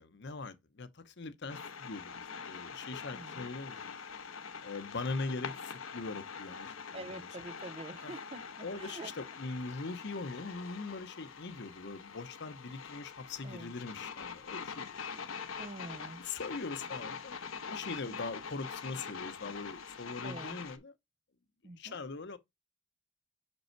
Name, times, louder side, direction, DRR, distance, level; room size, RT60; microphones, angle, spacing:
voice 1, 0.0-4.0 4.6-7.3 8.0-8.1 8.6-15.0 16.2-20.9 21.8-22.4, left 3 dB, 55° left, 0.8 m, -41 dB
sound 1, 1.5-20.8, left 6 dB, 75° left, 1.0 m, -44 dB
voice 2, 3.1-3.5 6.9-9.1 13.4-13.7 15.6-16.2 18.1-18.2 20.2-20.6 21.6-22.0, right 2 dB, 25° right, 0.4 m, -46 dB
5.5 x 5.3 x 4.5 m
head